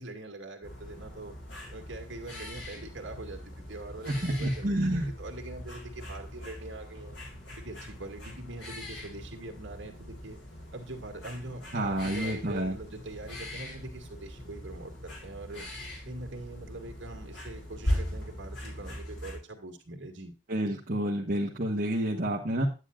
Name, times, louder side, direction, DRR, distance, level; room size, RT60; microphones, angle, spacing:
voice 1, 0.0-1.3 1.7-7.1 7.6-10.4 10.7-20.3, right 2 dB, 65° right, 3 dB, 2.2 m, -43 dB
sound 1, 0.6-19.4, left 1 dB, 65° left, 4.1 m, -40 dB
voice 2, 4.1-5.1 11.7-12.8 20.5-22.7, right 1 dB, 45° right, -3 dB, 1.3 m, -29 dB
9.9 x 9.7 x 2.4 m, 0.30 s
head